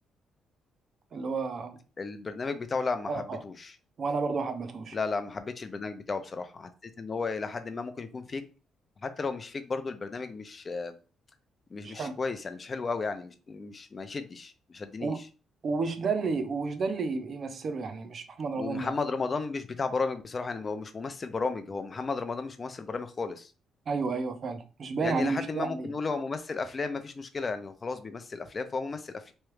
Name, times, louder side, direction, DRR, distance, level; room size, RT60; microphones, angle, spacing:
voice 1, 1.1-1.8 3.1-3.4 4.0-5.0 11.8-12.2 15.0-15.2 15.6-18.9 23.9-25.9, right 4 dB, 50° right, 0.5 m, -31 dB
voice 2, 2.0-3.7 4.9-6.7 7.0-8.4 9.0-10.9 11.7-15.1 18.5-23.5 25.0-29.3, left 4 dB, 35° left, 0.4 m, -34 dB
3.1 x 2.3 x 3.1 m
cardioid pair, 90°, 0 cm